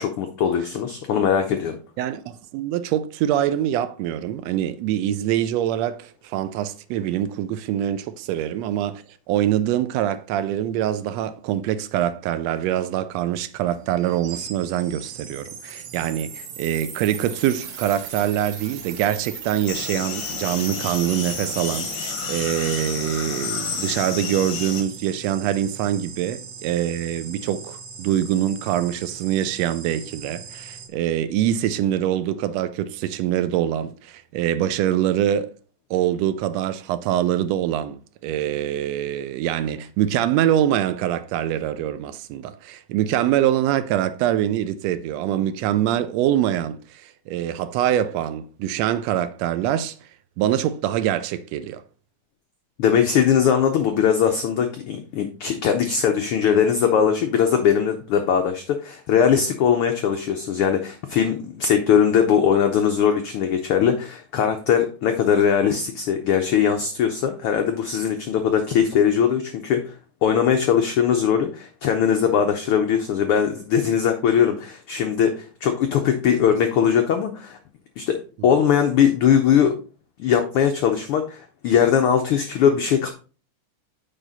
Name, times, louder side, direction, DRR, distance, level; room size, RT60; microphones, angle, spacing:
voice 1, 0.0-1.8 52.8-69.9 70.2-77.6 78.0-79.8 80.2-83.1, left 8 dB, 85° left, 1.2 m, -20 dB
voice 2, 2.0-35.5 35.9-49.9 50.4-51.8 78.4-78.5, right 11 dB, 80° right, 1.6 m, -24 dB
sound 1, 13.7-30.9, right 6 dB, 60° right, 2.0 m, -38 dB
sound 2, 19.7-24.8, left 6 dB, 65° left, 1.1 m, -31 dB
7.5 x 5.0 x 4.0 m
omnidirectional pair, 3.3 m